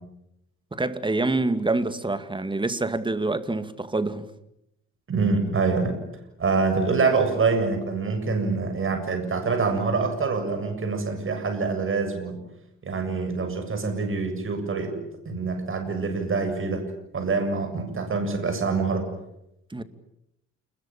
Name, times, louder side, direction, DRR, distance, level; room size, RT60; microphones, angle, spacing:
voice 1, 0.7-4.3 19.7-19.8, right 2 dB, 15° right, 2.3 m, -26 dB
voice 2, 5.1-6.0 6.4-12.4 12.8-15.0 15.2-19.1, right 4 dB, 45° right, 7.6 m, -25 dB
29.0 x 21.5 x 8.9 m
cardioid pair, 90°, 30 cm